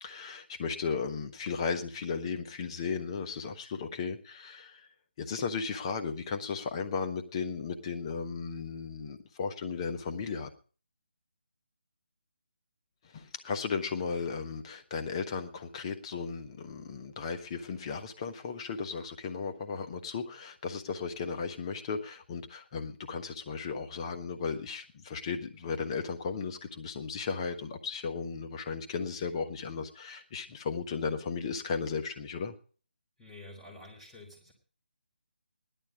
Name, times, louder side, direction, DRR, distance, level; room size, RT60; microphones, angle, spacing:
voice 1, 0.0-4.9 5.2-10.5 13.0-32.5, left 5 dB, 30° left, 6 dB, 1.4 m, -35 dB
voice 2, 33.2-34.5, left 2 dB, 5° left, -1 dB, 3.6 m, -49 dB
16.5 x 11.5 x 5.1 m, 0.40 s
figure-of-eight pair, 155°, 6 cm